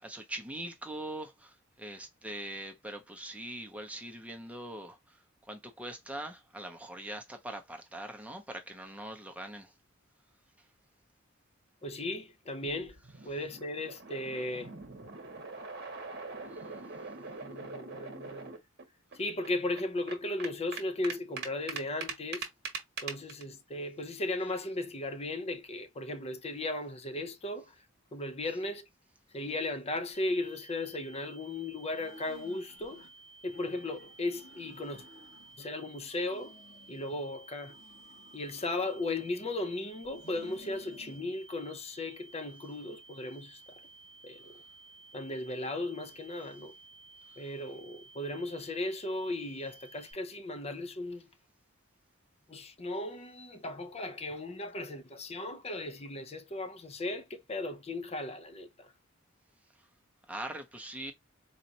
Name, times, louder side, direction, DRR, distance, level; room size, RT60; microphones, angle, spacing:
voice 1, 0.0-5.2 5.5-9.7 16.5-16.6 47.3-47.4 60.3-61.1, right 1 dB, 5° right, 0.7 m, -42 dB
voice 2, 11.8-13.0 13.2-14.7 17.2-18.5 19.1-22.5 23.0-27.8 28.1-28.8 29.3-33.1 33.4-35.0 35.6-36.5 36.9-37.8 38.3-43.6 44.2-44.6 45.1-46.7 47.4-51.3 52.5-58.9, left 2 dB, 30° left, 0.6 m, -36 dB
sound 1, 12.6-18.8 19.1-19.2 19.4-23.4, right 4 dB, 55° right, 1.0 m, -42 dB
sound 2, 30.1-50.1, right 3 dB, 60° left, 2.0 m, -55 dB
sound 3, 31.9-33.1 33.5-35.6 36.0-37.2 37.6-39.6 40.1-41.2, left 1 dB, 75° left, 2.1 m, -56 dB
4.1 x 2.4 x 2.7 m
head